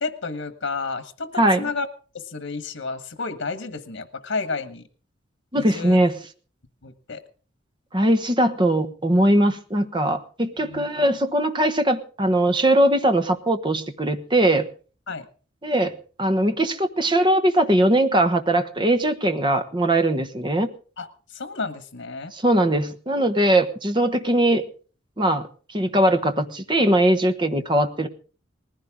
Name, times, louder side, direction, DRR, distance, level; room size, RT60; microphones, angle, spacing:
voice 1, 0.0-1.9 2.1-4.8 5.5-6.0 6.8-7.2 10.6-10.9 15.1-15.3 21.0-22.3, left 4 dB, 85° left, 9 dB, 1.3 m, -31 dB
voice 2, 1.4-1.7 5.5-6.1 7.9-14.7 15.6-20.7 22.3-24.6 25.2-25.5 25.7-28.1, right 1 dB, 25° right, 7 dB, 1.2 m, -20 dB
19.5 x 15.5 x 3.7 m, 0.40 s
head